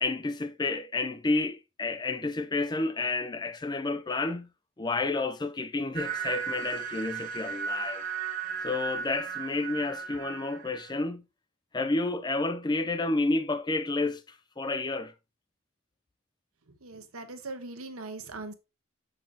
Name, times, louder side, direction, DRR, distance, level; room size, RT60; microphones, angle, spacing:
voice 1, 0.0-4.5 4.8-8.0 8.6-11.2 11.7-15.1, left 2 dB, 20° left, 0.4 m, -30 dB
sound 1, 5.9-11.0, right 6 dB, 40° right, 0.7 m, -35 dB
voice 2, 16.8-18.5, right 3 dB, 85° right, 1.2 m, -40 dB
7.0 x 5.5 x 2.8 m
head